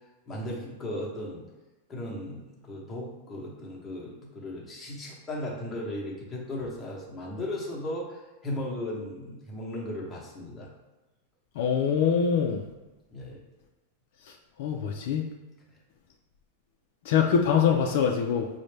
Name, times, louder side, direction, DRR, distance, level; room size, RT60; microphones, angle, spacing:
voice 1, 0.3-1.4 1.9-10.7 13.1-13.4, left 1 dB, 15° left, -5 dB, 0.8 m, -36 dB
voice 2, 11.6-12.6 14.6-15.2 17.1-18.5, left 7 dB, 55° left, 2 dB, 0.3 m, -24 dB
4.0 x 2.1 x 3.2 m, 1.1 s
supercardioid pair, 155°, 0 cm